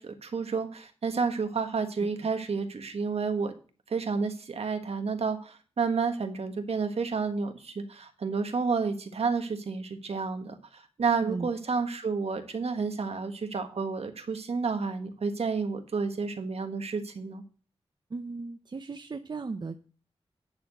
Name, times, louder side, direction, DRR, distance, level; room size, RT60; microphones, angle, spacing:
voice 1, 0.0-3.5 3.9-17.4, right 5 dB, 75° right, 7 dB, 1.5 m, -30 dB
voice 2, 18.1-19.8, right 4 dB, 45° right, 8 dB, 0.7 m, -36 dB
10.5 x 4.4 x 7.8 m, 0.37 s
wide cardioid pair, 95°, 10 cm